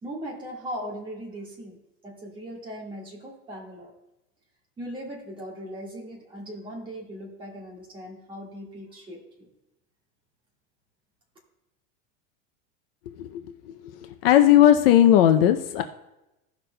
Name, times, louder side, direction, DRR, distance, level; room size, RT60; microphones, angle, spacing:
voice 1, 0.0-1.8 2.0-3.9 4.8-9.5, equal, 15° right, -3 dB, 1.7 m, -39 dB
voice 2, 14.2-15.8, left 11 dB, 50° left, 7 dB, 0.6 m, -17 dB
16.5 x 6.0 x 2.2 m, 0.94 s
supercardioid pair, 170°, 37 cm